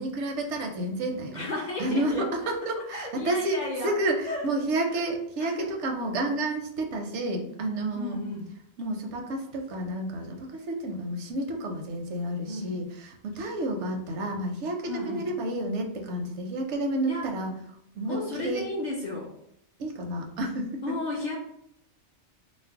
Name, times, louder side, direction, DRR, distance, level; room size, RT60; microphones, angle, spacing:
voice 1, 0.0-1.5 1.8-8.2 8.8-17.5 17.9-18.6 19.8-21.0, right 1 dB, 80° right, 3 dB, 0.9 m, -30 dB
voice 2, 1.3-2.3 2.9-3.9 4.3-4.4 4.9-5.0 5.4-5.7 7.9-8.5 12.5-12.8 14.9-15.3 17.1-17.3 18.1-19.3 20.8-21.4, left 2 dB, 55° left, -3 dB, 0.5 m, -33 dB
2.5 x 2.0 x 3.5 m, 0.75 s
omnidirectional pair, 1.2 m